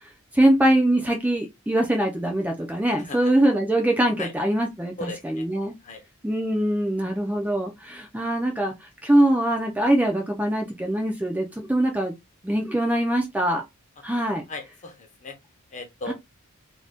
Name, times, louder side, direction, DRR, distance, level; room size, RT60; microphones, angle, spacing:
voice 1, 0.3-5.8 6.2-8.7 9.0-12.1 12.4-13.6 14.0-14.4 16.1-16.2, right 1 dB, 5° right, 0.4 m, -23 dB
voice 2, 3.0-3.3 4.2-4.3 5.0-5.5 5.8-6.0 14.5-15.4 15.7-16.1, left 2 dB, 35° left, 0.7 m, -37 dB
2.6 x 2.2 x 3.4 m
head